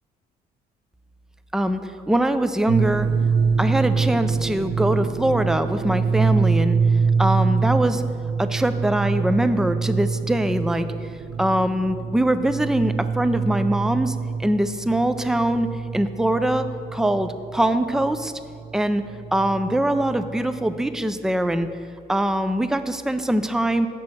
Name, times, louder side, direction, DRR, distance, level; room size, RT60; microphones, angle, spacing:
voice 1, 2.1-3.1 3.6-6.8 7.2-8.0 8.4-11.1 11.4-16.6 16.9-18.3 18.7-19.0 19.3-21.7 22.1-23.9, right 1 dB, 5° right, 10 dB, 0.4 m, -22 dB
sound 1, 2.7-20.9, right 5 dB, 75° right, 0.5 m, -25 dB
7.5 x 6.2 x 6.1 m, 2.3 s
cardioid pair, 100°, 18 cm